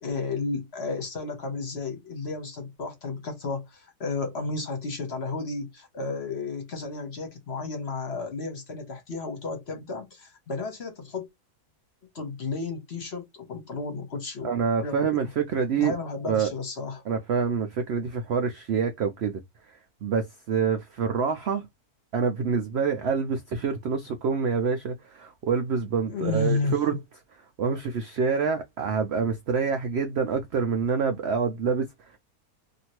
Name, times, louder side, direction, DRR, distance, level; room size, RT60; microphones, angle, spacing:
voice 1, 0.0-11.3 12.1-14.5 14.8-15.2 15.8-17.0 26.1-26.8, left 3 dB, 50° left, 1.0 m, -32 dB
voice 2, 14.4-15.9 16.3-16.5 17.1-19.4 19.7-21.7 22.1-27.0 27.6-32.2, right 6 dB, 70° right, 0.6 m, -26 dB
2.8 x 2.5 x 2.9 m
omnidirectional pair, 1.7 m